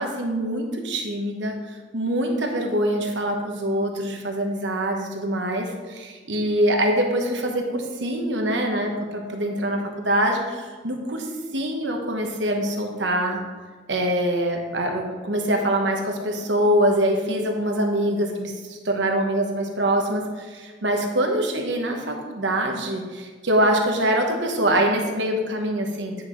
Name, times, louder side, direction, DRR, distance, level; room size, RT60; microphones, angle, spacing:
voice 1, 0.0-1.6 1.9-13.4 13.9-26.3, right 1 dB, 85° right, 2 dB, 1.2 m, -24 dB
10.0 x 5.7 x 3.2 m, 1.5 s
head